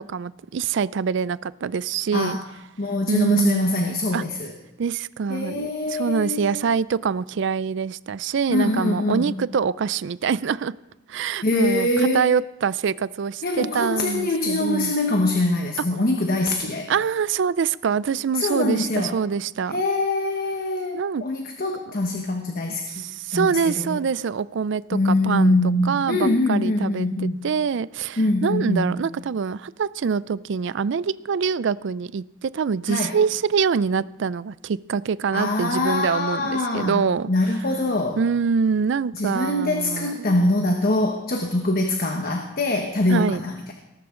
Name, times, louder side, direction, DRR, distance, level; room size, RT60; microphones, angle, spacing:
voice 1, 0.0-2.4 3.1-3.7 4.1-4.2 4.8-10.7 11.1-14.9 16.9-19.8 20.9-21.2 22.7-37.3 38.2-40.1 43.1-43.4, right 6 dB, 60° right, 19 dB, 0.4 m, -25 dB
voice 2, 2.8-4.5 5.3-6.6 8.5-9.4 11.4-12.2 13.4-16.9 18.3-19.1 19.7-23.0 23.3-24.0 24.9-27.4 28.2-29.0 32.9-33.1 35.3-38.2 39.1-43.7, left 2 dB, 45° left, 3 dB, 1.2 m, -23 dB
18.5 x 13.0 x 3.8 m, 0.92 s
head